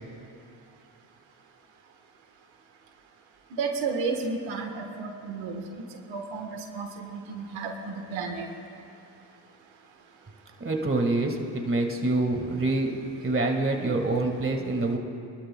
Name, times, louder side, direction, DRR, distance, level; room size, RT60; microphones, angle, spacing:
voice 1, 3.6-5.7 6.1-8.5, right 4 dB, 85° right, 3 dB, 1.4 m, -32 dB
voice 2, 10.6-15.0, right 2 dB, 30° right, 2 dB, 1.8 m, -26 dB
27.0 x 12.5 x 2.2 m, 2.6 s
cardioid pair, 70°, 45 cm